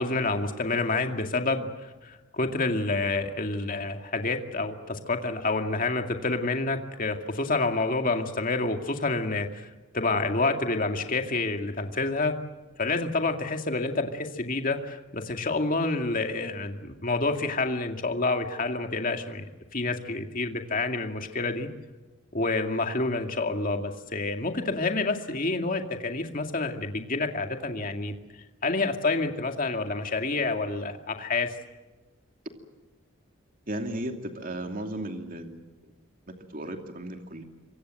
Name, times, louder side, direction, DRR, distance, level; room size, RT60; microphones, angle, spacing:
voice 1, 0.0-9.7 9.9-12.3 12.8-19.5 19.7-21.7 22.3-28.1 28.6-31.5, left 3 dB, 40° left, 5 dB, 2.2 m, -28 dB
voice 2, 33.7-35.6 36.3-37.4, right 1 dB, 40° right, 4 dB, 2.7 m, -35 dB
27.5 x 24.5 x 7.7 m, 1.2 s
head